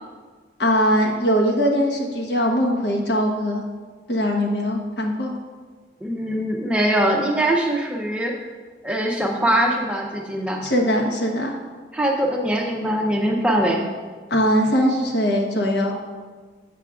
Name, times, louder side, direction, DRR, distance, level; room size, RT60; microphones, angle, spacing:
voice 1, 0.6-3.6 4.1-5.3 10.6-11.6 14.3-15.9, equal, 75° left, 0 dB, 1.0 m, -21 dB
voice 2, 6.0-8.3 8.8-10.6 11.9-13.8, right 1 dB, 5° right, 0 dB, 0.5 m, -22 dB
7.6 x 7.1 x 2.4 m, 1.5 s
head